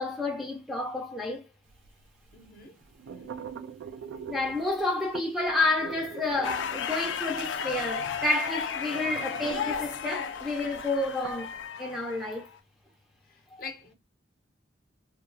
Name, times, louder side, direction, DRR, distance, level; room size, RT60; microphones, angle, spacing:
voice 1, 0.0-1.5 4.3-11.5 11.8-12.5, left 2 dB, ahead, 0.5 m, -30 dB
sound 1, 1.7-11.6, right 7 dB, 90° right, 0.3 m, -44 dB
voice 2, 2.3-2.8 3.1-3.4 13.2-13.9, left 5 dB, 50° left, 0.7 m, -45 dB
sound 2, 6.4-12.6, left 6 dB, 85° left, 0.4 m, -34 dB
2.9 x 2.3 x 2.5 m
head